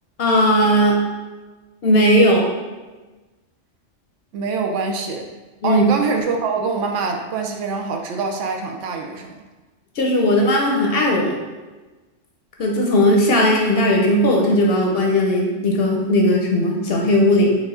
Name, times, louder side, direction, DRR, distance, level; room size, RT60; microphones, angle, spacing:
voice 1, 0.2-1.0 1.8-2.4 5.6-5.8 10.0-11.4 12.6-17.6, left 1 dB, 60° left, 0 dB, 0.8 m, -17 dB
voice 2, 4.3-5.2 5.6-9.3, right 4 dB, 75° right, 3 dB, 0.9 m, -24 dB
5.1 x 2.4 x 3.6 m, 1.2 s
omnidirectional pair, 1.3 m